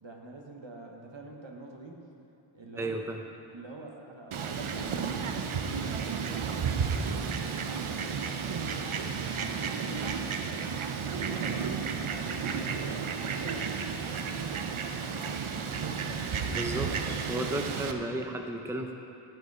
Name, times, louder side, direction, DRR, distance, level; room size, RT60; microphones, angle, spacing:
voice 1, 0.0-2.1 2.5-3.0 3.5-10.7 11.0-15.9, right 2 dB, 65° right, 1 dB, 1.2 m, -46 dB
voice 2, 2.8-3.2 16.5-17.0 17.2-18.9, right 1 dB, 5° right, 3 dB, 0.6 m, -33 dB
Fowl, 4.3-17.9, right 6 dB, 80° right, 0.7 m, -32 dB
14.0 x 5.1 x 4.8 m, 2.9 s
wide cardioid pair, 55°, 49 cm